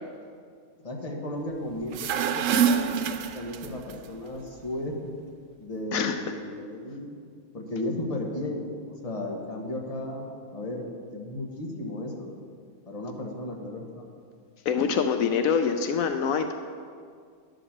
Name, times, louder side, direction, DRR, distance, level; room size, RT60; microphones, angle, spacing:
voice 1, 0.8-5.1 5.6-7.2 7.5-12.3 12.9-14.0, left 1 dB, 30° left, 0 dB, 1.3 m, -35 dB
sound 1, 1.8-3.9, right 7 dB, 75° right, 0.9 m, -26 dB
voice 2, 14.7-16.5, left 6 dB, 80° left, 7 dB, 1.0 m, -25 dB
11.0 x 5.2 x 7.2 m, 2.1 s
omnidirectional pair, 1.5 m